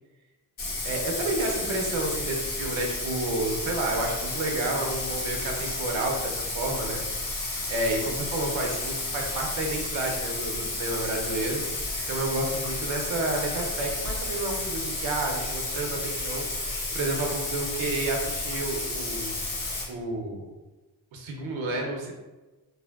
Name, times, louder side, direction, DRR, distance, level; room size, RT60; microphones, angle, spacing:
Bathtub (filling or washing), 0.6-19.8, left 2 dB, 90° left, 0.9 m, -32 dB
voice 1, 0.8-7.0 7.7-11.6 12.1-16.4 16.9-19.4 19.9-20.4 21.1-22.1, right 2 dB, 80° right, 1 dB, 0.7 m, -30 dB
3.2 x 2.1 x 2.2 m, 1.1 s
cardioid pair, 65°, 46 cm